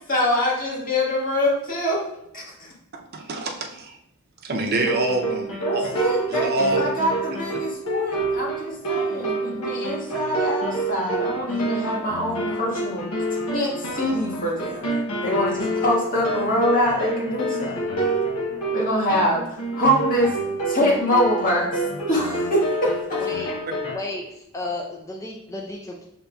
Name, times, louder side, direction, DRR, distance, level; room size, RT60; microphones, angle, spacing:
voice 1, 0.1-2.0 2.3-2.7 5.6-13.0 13.5-14.8 15.2-17.8 18.7-20.4 20.7-21.8 22.1-23.2, equal, 40° left, -4 dB, 1.6 m, -24 dB
voice 2, 2.9-4.0 4.4-6.0 6.3-6.8, right 1 dB, 45° right, 2 dB, 0.6 m, -26 dB
sound 1, 4.7-24.0, right 2 dB, 85° left, 0.9 m, -27 dB
voice 3, 23.2-23.5 23.9-26.1, left 2 dB, 15° left, 0 dB, 0.5 m, -33 dB
5.6 x 3.8 x 2.3 m, 0.78 s
head